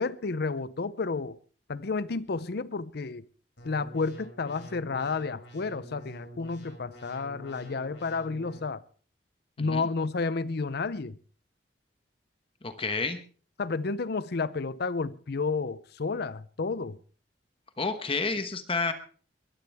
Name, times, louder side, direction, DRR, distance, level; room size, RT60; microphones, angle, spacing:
voice 1, 0.0-1.4 1.7-3.2 3.6-8.8 9.6-11.2 13.6-17.0, left 4 dB, 65° left, 0.6 m, -31 dB
Square Buzz, 3.6-8.6, right 1 dB, 85° left, 6.5 m, -47 dB
voice 2, 9.6-9.9 12.6-13.2 17.8-18.9, left 4 dB, 30° left, 1.1 m, -30 dB
21.0 x 14.5 x 3.5 m
head